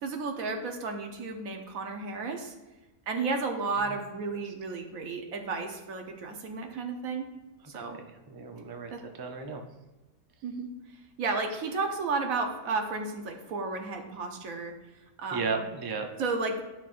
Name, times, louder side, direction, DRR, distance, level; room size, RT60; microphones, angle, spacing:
voice 1, 0.0-2.5 3.1-7.3 7.7-8.0 8.9-9.0 10.4-10.7 11.2-14.7 15.2-15.6 16.2-16.6, right 4 dB, 70° right, 4 dB, 1.3 m, -33 dB
voice 2, 7.7-8.9 9.2-9.6 15.3-16.1, right 4 dB, 40° right, 4 dB, 0.3 m, -34 dB
11.0 x 5.8 x 2.5 m, 1.1 s
omnidirectional pair, 1.5 m